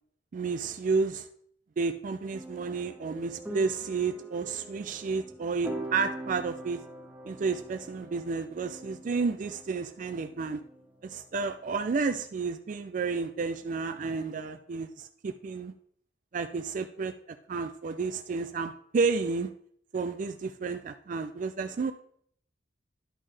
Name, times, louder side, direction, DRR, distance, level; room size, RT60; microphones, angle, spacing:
voice 1, 0.3-1.3 1.8-6.8 7.3-10.6 11.0-15.7 16.3-17.1 17.5-19.5 19.9-21.9, right 4 dB, 45° right, 7 dB, 0.4 m, -31 dB
sound 1, 2.3-12.0, right 1 dB, 10° right, 0.7 m, -44 dB
11.0 x 5.4 x 3.4 m, 0.64 s
head